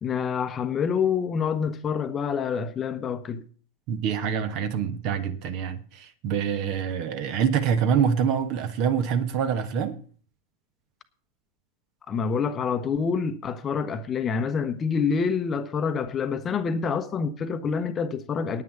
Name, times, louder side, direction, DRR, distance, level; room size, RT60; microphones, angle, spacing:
voice 1, 0.0-3.4 12.1-18.6, left 6 dB, 25° left, 0.9 m, -27 dB
voice 2, 3.9-9.9, right 7 dB, 45° right, 1.4 m, -25 dB
9.7 x 9.4 x 6.7 m
figure-of-eight pair, 90°, 0 cm